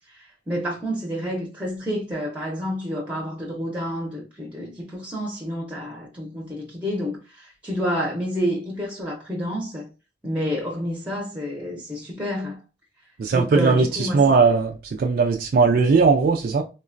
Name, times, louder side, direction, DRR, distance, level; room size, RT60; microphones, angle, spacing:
voice 1, 0.1-9.9 10.2-12.6 13.3-14.2, equal, 10° right, 0.6 m, -29 dB
voice 2, 13.2-16.6, right 4 dB, 55° right, 0.3 m, -19 dB
3.6 x 2.1 x 2.5 m
head